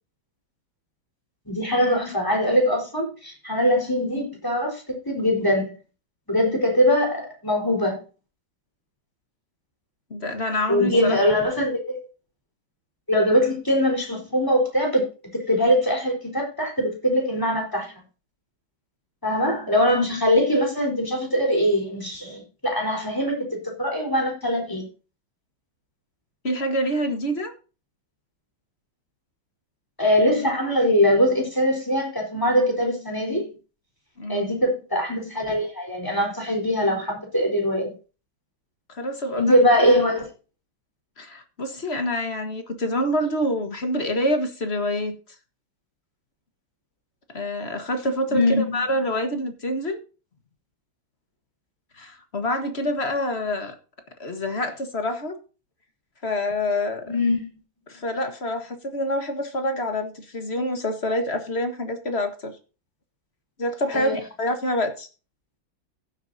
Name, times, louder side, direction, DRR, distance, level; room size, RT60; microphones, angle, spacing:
voice 1, 1.5-5.7 6.3-8.0 10.7-12.0 13.1-15.1 15.5-17.9 19.2-23.5 23.8-24.8 30.0-33.4 34.3-37.9 39.4-40.2 48.3-48.8 57.1-57.5 63.9-64.2, equal, 10° left, 4.2 m, -22 dB
voice 2, 10.1-11.2 26.4-27.5 34.2-34.5 38.9-39.6 41.2-45.2 47.3-50.0 52.0-53.7 54.2-55.3 56.2-57.0 57.9-62.6 63.6-65.1, left 1 dB, 35° left, 1.6 m, -26 dB
15.5 x 8.4 x 2.8 m
omnidirectional pair, 2.1 m